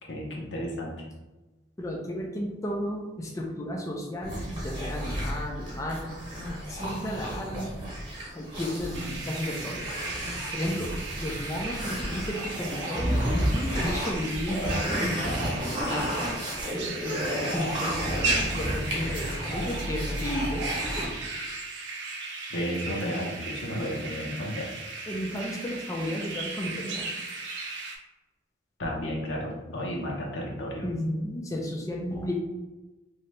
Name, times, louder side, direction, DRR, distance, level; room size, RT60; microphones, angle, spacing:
voice 1, 0.1-1.0 22.5-24.7 28.8-30.9, equal, 80° left, -2 dB, 0.9 m, -32 dB
voice 2, 1.8-6.1 6.7-7.8 8.3-10.1 10.5-10.9 11.2-16.3 17.0-20.7 21.0-21.1 25.1-27.1 30.8-32.3, equal, 15° left, -1 dB, 0.4 m, -33 dB
sound 1, 4.2-21.1, equal, 30° right, 1.0 m, -32 dB
sound 2, 8.9-28.0, right 3 dB, 70° right, 0.6 m, -36 dB
2.8 x 2.8 x 3.2 m, 1.1 s
head